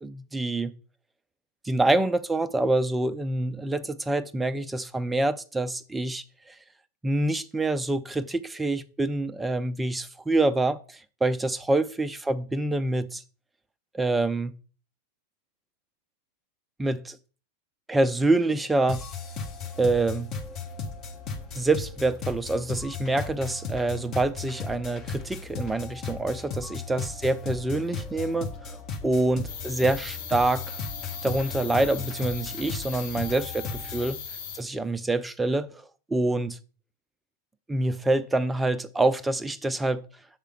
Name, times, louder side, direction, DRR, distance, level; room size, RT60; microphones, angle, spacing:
voice 1, 0.0-0.7 1.6-6.2 7.0-13.2 13.9-14.5 16.8-17.2 17.9-19.0 19.8-20.3 21.6-30.8 31.2-34.2 34.5-35.7 36.1-36.6 37.7-40.0, right 2 dB, 10° right, 0.5 m, -26 dB
sound 1, 18.9-34.1, left 4 dB, 35° left, 1.4 m, -36 dB
sound 2, 29.5-34.6, left 7 dB, 55° left, 1.1 m, -38 dB
7.4 x 3.5 x 5.8 m
figure-of-eight pair, 90°, 0 cm